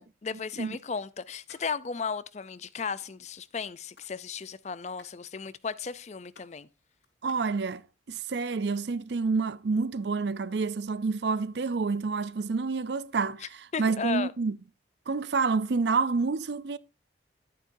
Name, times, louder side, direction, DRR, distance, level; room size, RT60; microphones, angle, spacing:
voice 1, 0.0-6.7 13.7-14.3, left 5 dB, 35° left, 0.5 m, -35 dB
sound 1, 1.5-1.6 2.0-2.1 2.3-3.1 3.6-4.2 4.4-7.4, left 4 dB, 65° left, 5.1 m, -57 dB
voice 2, 7.2-14.6 15.1-16.8, right 4 dB, 65° right, 0.5 m, -28 dB
11.0 x 9.3 x 2.6 m
head